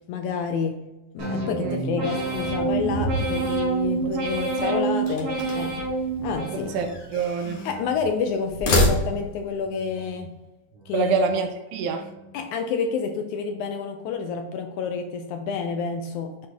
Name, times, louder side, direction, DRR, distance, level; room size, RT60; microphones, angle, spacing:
voice 1, 0.1-0.8 1.1-5.9 6.2-6.8 7.7-10.4 10.9-11.2 12.3-16.5, left 5 dB, 80° left, 5 dB, 1.8 m, -29 dB
sound 1, 1.2-7.0 7.4-8.1 8.5-9.2 9.6-10.3 10.7-11.3 11.8-12.3, right 3 dB, 50° right, 2.4 m, -29 dB
Thunder, 2.2-9.0, equal, 30° left, 1.5 m, -37 dB
voice 2, 4.1-4.8 6.5-7.6 10.9-12.1, right 5 dB, 80° right, 6 dB, 1.9 m, -27 dB
sound 2, 5.1-5.8 6.7-7.8 8.4-9.5, left 1 dB, 55° left, 2.3 m, -26 dB
8.4 x 3.3 x 3.4 m, 1.0 s
omnidirectional pair, 3.7 m